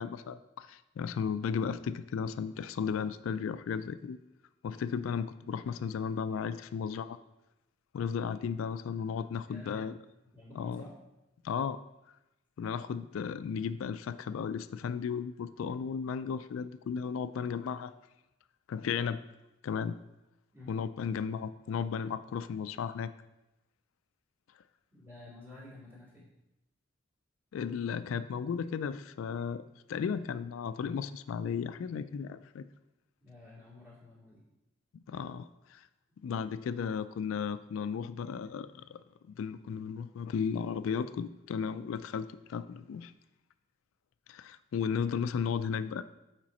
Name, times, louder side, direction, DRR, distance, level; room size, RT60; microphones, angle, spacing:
voice 1, 0.0-4.2 4.6-7.2 7.9-9.9 10.6-10.8 11.4-11.8 12.6-17.9 18.7-19.2 19.6-20.0 20.7-23.1 27.5-29.6 29.9-32.6 34.9-35.9 36.2-39.0 39.3-43.1 44.3-46.0, left 6 dB, 90° left, 12 dB, 0.3 m, -35 dB
voice 2, 9.5-9.8 10.3-11.0 20.5-20.8 24.9-26.3 33.2-34.4, left 2 dB, 10° right, -6 dB, 2.2 m, -50 dB
7.5 x 5.1 x 4.2 m, 0.94 s
head